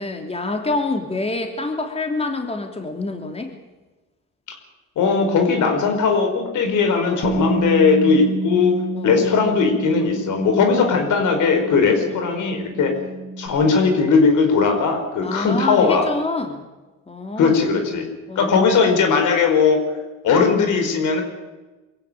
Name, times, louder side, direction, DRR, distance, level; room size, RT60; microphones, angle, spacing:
voice 1, 0.0-3.5 8.9-9.2 15.2-16.6 17.1-17.6 18.3-18.8, left 2 dB, 20° left, 4 dB, 3.0 m, -27 dB
voice 2, 5.0-12.9 13.4-16.1 17.4-18.1 18.3-19.8 20.2-21.2, left 5 dB, 80° left, 5 dB, 4.7 m, -18 dB
Bass guitar, 7.2-13.5, right 2 dB, 45° left, 7.4 m, -28 dB
23.5 x 16.0 x 9.0 m, 1.2 s
cardioid pair, 90°, 30 cm